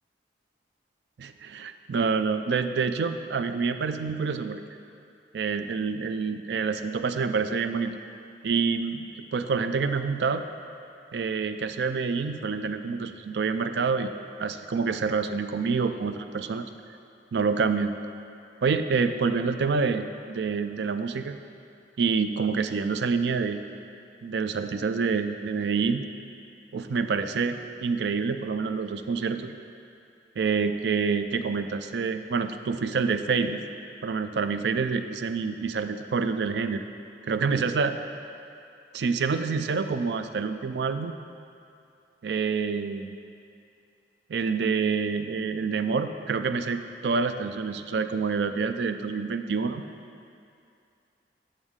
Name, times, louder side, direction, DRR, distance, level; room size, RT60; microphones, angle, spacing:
voice 1, 1.2-4.6 5.3-7.9 8.4-9.1 9.3-10.5 11.1-14.1 14.4-16.7 17.3-17.9 18.6-21.3 22.0-23.6 24.2-26.1 26.7-29.5 30.4-33.6 34.0-36.8 37.3-38.0 38.9-41.1 42.2-43.2 44.3-49.8, right 5 dB, 75° right, 9 dB, 0.4 m, -27 dB
8.0 x 7.1 x 3.7 m, 2.5 s
head